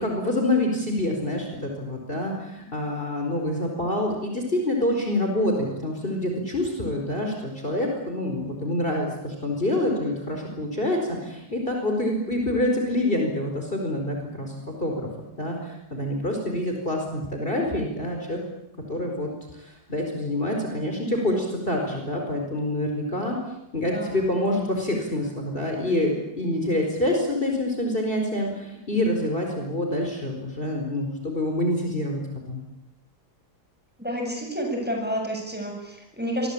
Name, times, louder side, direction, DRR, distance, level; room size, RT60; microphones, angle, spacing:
voice 1, 0.0-14.5 14.8-15.1 15.3-18.4 18.9-23.4 23.7-32.2 32.5-32.6, left 1 dB, 35° left, 1 dB, 4.9 m, -26 dB
voice 2, 23.8-24.2 34.0-36.5, equal, 5° right, 1 dB, 7.8 m, -30 dB
27.5 x 23.5 x 8.7 m, 0.91 s
omnidirectional pair, 1.7 m